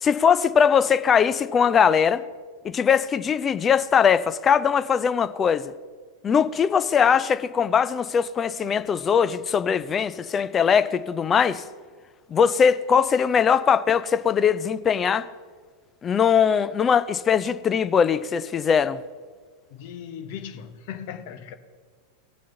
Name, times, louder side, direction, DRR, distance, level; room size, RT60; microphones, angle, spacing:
voice 1, 0.0-2.2 2.6-5.7 6.2-11.6 12.3-15.3 16.0-19.0, left 7 dB, 20° left, 0.5 m, -21 dB
voice 2, 19.7-21.5, left 8 dB, 50° left, 0.9 m, -37 dB
18.5 x 6.4 x 3.9 m
figure-of-eight pair, 90°, 0 cm